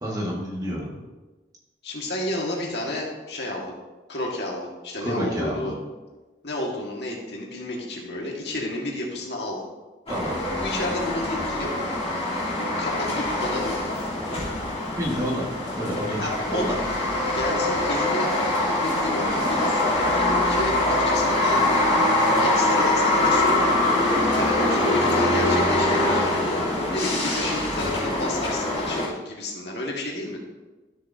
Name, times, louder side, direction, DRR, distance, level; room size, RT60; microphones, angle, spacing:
voice 1, 0.0-1.0 5.0-5.8 10.1-10.4 15.0-15.5 15.8-16.8, equal, 20° right, -3 dB, 1.7 m, -29 dB
voice 2, 1.8-3.8 4.1-5.7 6.4-9.6 10.6-11.9 12.6-13.8 16.2-16.8 17.4-18.3 18.8-22.1 22.4-24.0 24.4-30.4, left 1 dB, 65° left, -2 dB, 1.8 m, -31 dB
sound 1, 10.1-29.1, left 1 dB, 35° left, 3.2 m, -23 dB
13.0 x 6.7 x 2.8 m, 1.2 s
head